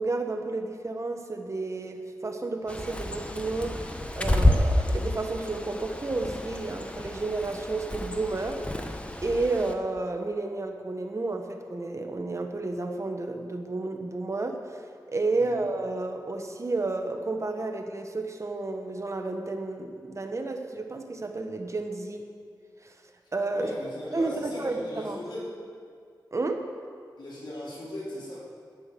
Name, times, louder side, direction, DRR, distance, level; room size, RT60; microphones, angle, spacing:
voice 1, 0.0-8.6 9.2-14.8 15.1-22.2 22.8-22.9 23.3-23.7 24.1-25.2 26.3-26.7, right 3 dB, 40° right, 4 dB, 1.2 m, -31 dB
Bird, 2.7-9.7, left 1 dB, 15° left, 1.0 m, -29 dB
voice 2, 23.5-25.5 27.2-28.4, left 1 dB, 85° left, -6 dB, 3.9 m, -37 dB
12.5 x 9.6 x 6.8 m, 2.1 s
wide cardioid pair, 90°, 8 cm